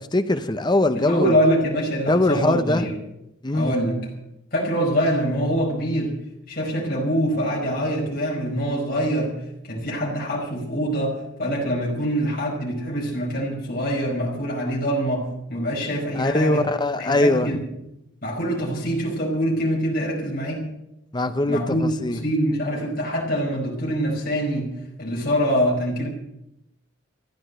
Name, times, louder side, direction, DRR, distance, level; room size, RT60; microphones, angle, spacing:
voice 1, 0.0-1.4 2.1-2.9 3.4-3.7 16.2-17.5 21.1-22.2, left 1 dB, 20° left, 11 dB, 0.7 m, -21 dB
voice 2, 0.9-2.9 3.5-4.1 4.5-6.1 6.5-9.3 9.6-16.6 17.0-17.6 18.2-20.7 21.5-24.7 25.0-26.1, equal, 45° left, -3 dB, 5.1 m, -24 dB
14.5 x 10.5 x 7.9 m, 0.86 s
head